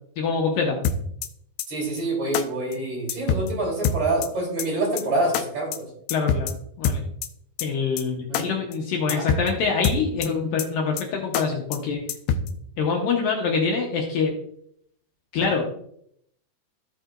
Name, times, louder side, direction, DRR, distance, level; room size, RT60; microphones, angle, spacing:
voice 1, 0.2-0.8 6.1-6.5 6.8-7.0 7.6-12.0 12.8-14.3 15.3-15.6, left 5 dB, 70° left, 0 dB, 2.4 m, -25 dB
sound 1, 0.8-1.3 1.6-1.7 2.0-2.1 2.3-2.4 2.7-2.8 3.1-3.5 3.8-4.3 4.6-4.7 5.0-5.1 5.3-5.4 5.7-5.8 6.1-6.5 6.8-7.3 7.6-7.7 8.0-8.1 8.3-8.4 8.7-8.8 9.1-9.5 9.8-10.3 10.6-10.7 11.0-11.1 11.3-11.4 11.7-11.8 12.1-12.5, left 6 dB, 90° left, 2.9 m, -24 dB
voice 2, 1.7-5.9 8.3-8.5 9.1-9.2, right 2 dB, 45° right, -2 dB, 4.2 m, -26 dB
16.5 x 5.5 x 2.6 m, 0.69 s
omnidirectional pair, 4.7 m